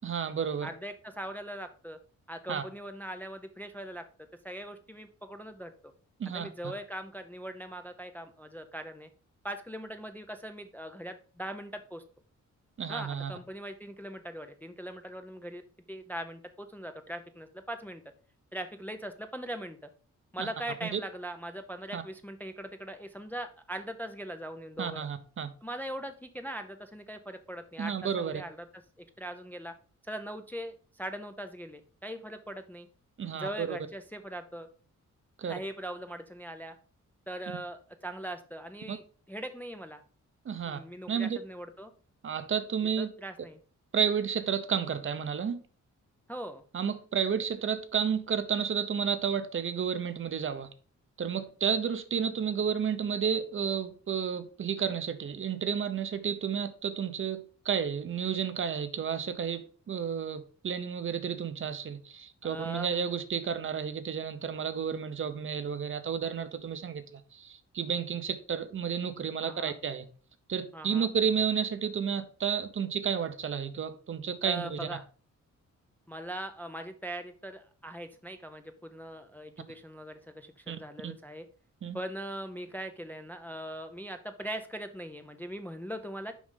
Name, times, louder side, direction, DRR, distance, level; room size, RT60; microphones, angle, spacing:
voice 1, 0.0-0.7 2.5-2.6 6.2-6.5 12.8-13.3 20.4-20.5 20.8-21.0 21.9-22.0 24.8-25.5 27.8-28.4 33.2-33.8 35.4-35.5 38.9-39.0 40.4-40.8 41.1-41.4 42.2-43.1 43.9-45.6 46.7-50.7 51.2-70.1 70.5-74.9 80.7-80.8 81.0-81.1 81.8-82.0, right 7 dB, 40° right, 0.7 m, -31 dB
voice 2, 0.6-2.0 2.3-4.0 4.4-5.7 6.3-9.1 9.4-12.0 12.9-15.6 15.9-18.0 18.5-19.9 20.3-25.1 25.6-29.7 30.1-32.9 33.3-34.7 35.5-36.8 37.3-39.0 39.3-40.0 40.6-41.9 43.0-43.6 46.3-46.6 62.4-63.0 69.4-69.8 70.7-71.1 74.4-75.0 76.1-81.5 81.9-86.3, right 1 dB, 5° left, 0.4 m, -40 dB
6.1 x 5.3 x 3.7 m
wide cardioid pair, 175°, 30 cm